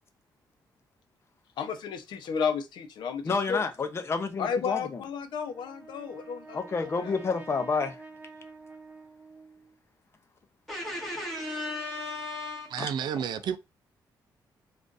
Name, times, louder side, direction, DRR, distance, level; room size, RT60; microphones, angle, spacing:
voice 1, 1.6-3.6 4.4-7.1, left 6 dB, 75° left, 0.7 m, -33 dB
voice 2, 3.2-5.0 6.5-8.0 12.8-13.1, left 4 dB, 35° left, 0.6 m, -30 dB
Brass instrument, 5.3-9.7, right 3 dB, 25° right, 0.9 m, -48 dB
voice 3, 10.7-12.8, left 2 dB, ahead, 1.7 m, -35 dB
voice 4, 12.7-13.6, right 8 dB, 70° right, 0.4 m, -31 dB
3.8 x 2.5 x 2.5 m
cardioid pair, 120°, 8 cm